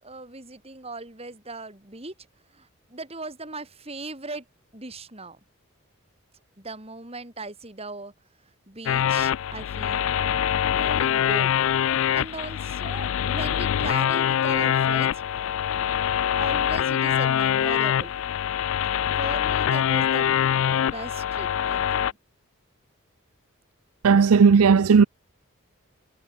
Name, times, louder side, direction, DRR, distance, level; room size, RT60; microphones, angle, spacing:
voice 1, 0.0-2.1 2.5-4.4 4.7-5.4 6.6-8.1 8.7-10.1 10.6-11.5 11.9-15.2 16.3-18.1 19.2-20.3 20.8-22.2, right 2 dB, 25° right, 3.6 m, -38 dB
sound 1, 8.9-22.1, left 9 dB, 65° left, 0.3 m, -24 dB
voice 2, 24.0-25.1, right 5 dB, 80° right, 0.5 m, -15 dB
head